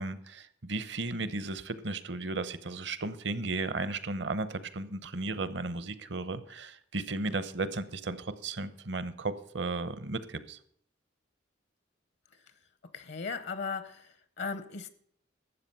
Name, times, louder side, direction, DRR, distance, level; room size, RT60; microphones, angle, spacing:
voice 1, 0.0-10.6, right 3 dB, 65° right, 0.9 m, -35 dB
voice 2, 12.9-14.9, left 5 dB, 65° left, 0.8 m, -37 dB
12.5 x 7.7 x 5.5 m
head